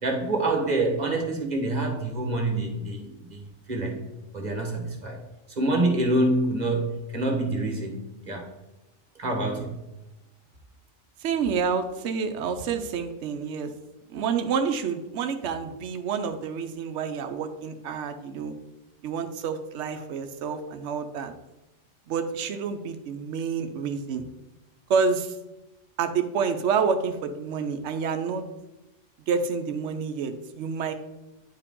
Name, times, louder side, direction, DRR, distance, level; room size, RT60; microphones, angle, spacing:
voice 1, 0.0-3.4 3.7-4.0 4.3-5.2 5.6-8.5 9.2-9.8, right 2 dB, 40° right, 1 dB, 1.4 m, -26 dB
voice 2, 11.2-13.7 14.1-18.5 19.0-21.3 22.1-24.2 24.9-25.3 26.0-28.4 29.3-30.9, right 6 dB, 75° right, 6 dB, 1.0 m, -28 dB
9.6 x 4.7 x 3.7 m, 0.98 s
omnidirectional pair, 1.2 m